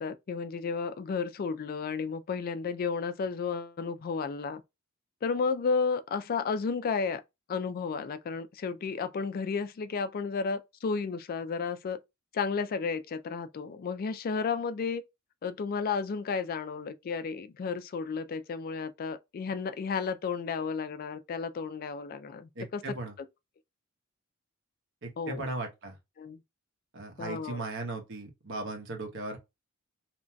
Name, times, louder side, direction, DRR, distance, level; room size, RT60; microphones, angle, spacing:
voice 1, 0.0-4.6 5.2-7.2 7.5-12.0 12.3-15.0 15.4-23.0 25.2-25.5 26.2-26.4 27.2-27.6, left 5 dB, 45° left, 0.3 m, -32 dB
voice 2, 22.5-23.1 25.0-25.9 26.9-29.4, right 2 dB, 60° right, 1.0 m, -37 dB
2.9 x 2.6 x 2.2 m
head